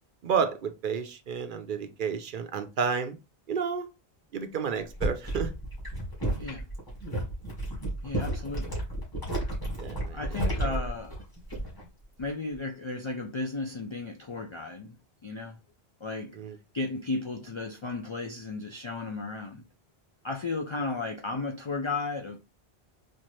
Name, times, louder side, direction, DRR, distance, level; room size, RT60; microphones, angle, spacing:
voice 1, 0.2-3.2 3.5-3.9 4.3-5.5 9.8-10.7 16.3-16.6, right 6 dB, 60° right, 0.7 m, -31 dB
sound 1, 4.9-11.9 12.2-12.6, right 1 dB, 20° left, 1.7 m, -32 dB
voice 2, 8.0-8.8 9.4-9.5 10.1-11.2 12.2-15.0 15.2-15.6 16.0-16.4 16.7-19.6 20.2-22.4, left 3 dB, 50° left, 0.3 m, -34 dB
4.3 x 2.5 x 3.0 m
omnidirectional pair, 1.0 m